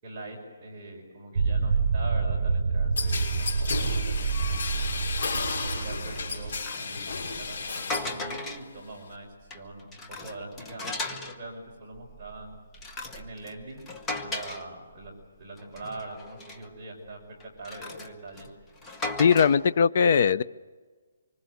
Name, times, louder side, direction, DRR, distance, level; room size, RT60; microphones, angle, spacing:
voice 1, 0.0-3.5 3.9-5.0 5.5-12.6 13.1-13.8 14.2-15.1 15.4-17.2 17.6-18.5, right 2 dB, 20° right, -4 dB, 5.3 m, -43 dB
sound 1, 1.4-6.6, right 4 dB, 50° right, 6.1 m, -27 dB
sound 2, 3.0-8.2 8.5-9.1, left 4 dB, 55° left, 6.3 m, -33 dB
sound 3, 6.1-8.8 9.3-11.4 11.9-15.2 15.6-16.7 17.4-19.7, left 2 dB, 10° left, 1.1 m, -38 dB
voice 2, 19.2-20.4, left 6 dB, 40° left, 15 dB, 0.7 m, -20 dB
25.5 x 25.0 x 8.1 m, 1.4 s
hypercardioid pair, 175°, 0 cm